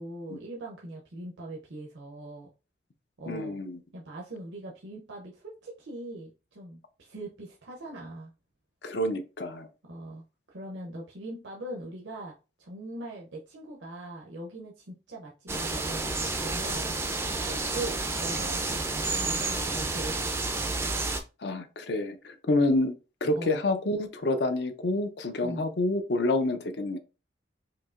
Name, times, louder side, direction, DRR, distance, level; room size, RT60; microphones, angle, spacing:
voice 1, 0.0-2.5 3.2-3.6 3.9-8.3 9.8-16.9 17.5-20.5 23.4-23.6 25.4-25.6, right 2 dB, 90° right, 0.7 m, -41 dB
voice 2, 3.3-3.8 8.8-9.7 21.4-22.9 23.2-27.0, left 2 dB, 65° left, 0.5 m, -28 dB
sound 1, 15.5-21.2, right 3 dB, 15° right, 0.3 m, -30 dB
4.5 x 2.7 x 2.5 m
head